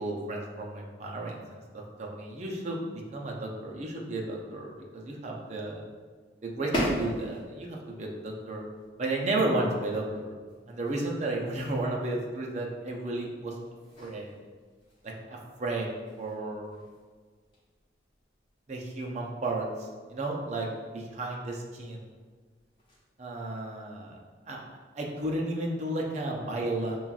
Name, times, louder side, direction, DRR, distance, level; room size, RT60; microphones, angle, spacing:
voice 1, 0.0-1.6 2.0-2.8 3.1-5.8 6.4-8.6 9.0-10.3 10.7-13.5 14.0-14.3 15.3-15.9 16.2-16.8 18.7-20.7 20.9-22.0 23.2-24.2 24.5-27.0, right 2 dB, 35° right, -1 dB, 0.5 m, -33 dB
sound 1, 6.7-23.2, equal, 25° left, 0.9 m, -42 dB
5.5 x 2.3 x 2.3 m, 1.5 s
head